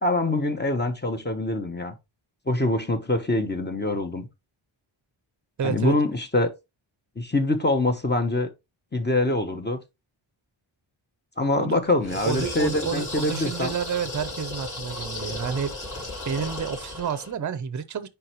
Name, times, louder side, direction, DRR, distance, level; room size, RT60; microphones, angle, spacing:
voice 1, 0.0-1.9 2.5-4.3 5.6-6.5 7.2-8.5 8.9-9.8 11.4-13.7, left 2 dB, 20° left, 1.0 m, -24 dB
voice 2, 5.6-6.0 11.6-11.8 12.2-15.7 16.2-18.1, right 7 dB, 40° right, 0.6 m, -29 dB
sound 1, 12.0-17.3, left 2 dB, 40° left, 4.2 m, -35 dB
9.7 x 3.4 x 3.0 m
wide cardioid pair, 125°, 48 cm